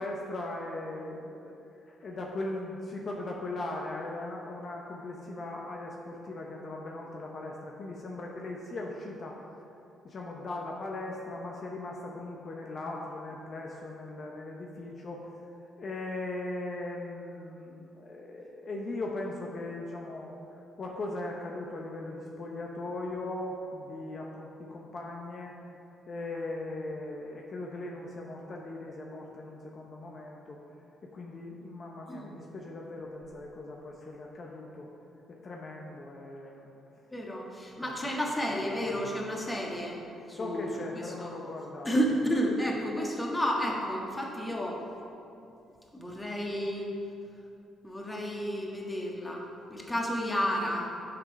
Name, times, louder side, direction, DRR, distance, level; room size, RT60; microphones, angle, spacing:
voice 1, 0.0-9.4 10.0-15.4 15.8-25.5 26.1-30.6 31.0-34.9 35.3-36.7 37.8-38.1 40.3-41.9 49.8-49.9, left 2 dB, 45° left, -1 dB, 0.8 m, -39 dB
voice 2, 37.1-40.0 40.3-40.7 41.2-41.3 41.8-44.8 45.9-46.9 47.8-49.4 49.7-50.9, equal, 15° left, -1 dB, 1.5 m, -31 dB
7.8 x 5.9 x 5.3 m, 2.7 s
cardioid pair, 90°, 0 cm